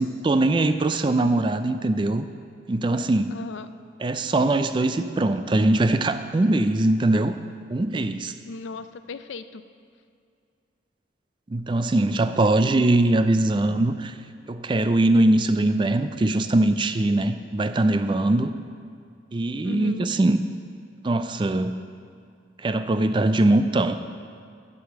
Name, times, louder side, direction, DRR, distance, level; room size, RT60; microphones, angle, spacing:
voice 1, 0.0-2.3 2.7-3.4 4.0-7.4 7.7-8.3 11.5-14.1 14.5-18.5 19.3-20.4 21.0-21.7 22.6-24.0, right 2 dB, 25° right, 10 dB, 0.4 m, -21 dB
voice 2, 3.3-3.7 8.4-9.6 12.3-12.7 19.6-20.1, left 3 dB, 90° left, 11 dB, 0.5 m, -36 dB
11.5 x 4.9 x 7.3 m, 2.3 s
head